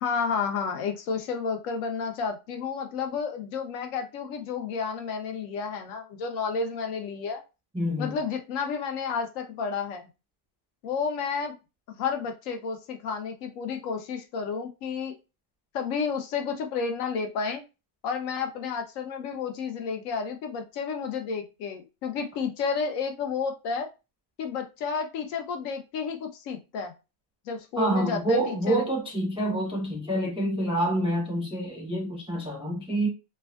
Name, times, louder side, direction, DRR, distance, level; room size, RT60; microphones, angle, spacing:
voice 1, 0.0-7.4 8.0-10.1 10.8-11.5 11.9-15.2 15.7-17.6 18.0-23.9 24.4-26.9 27.5-28.9, left 5 dB, 85° left, 1.0 m, -31 dB
voice 2, 7.7-8.2 27.8-33.1, right 1 dB, 5° right, 0.5 m, -27 dB
3.4 x 2.2 x 2.2 m
omnidirectional pair, 1.3 m